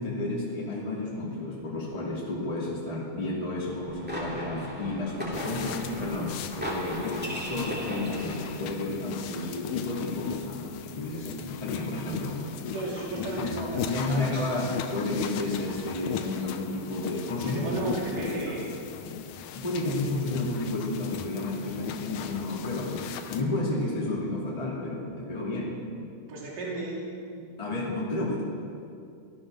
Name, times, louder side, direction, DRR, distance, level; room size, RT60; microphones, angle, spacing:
voice 1, 0.0-12.6 13.1-13.6 13.9-17.7 18.1-18.6 19.5-23.0 23.3-25.8 27.6-28.4, left 2 dB, 10° left, -6 dB, 2.3 m, -32 dB
sound 1, 3.7-8.7, equal, 5° right, 1.6 m, -37 dB
sound 2, 5.3-23.4, left 7 dB, 75° left, 2.0 m, -37 dB
voice 2, 12.7-14.5 17.4-18.7 26.3-27.0, right 2 dB, 65° right, -4 dB, 4.5 m, -34 dB
16.0 x 13.0 x 6.4 m, 2.4 s
omnidirectional pair, 4.3 m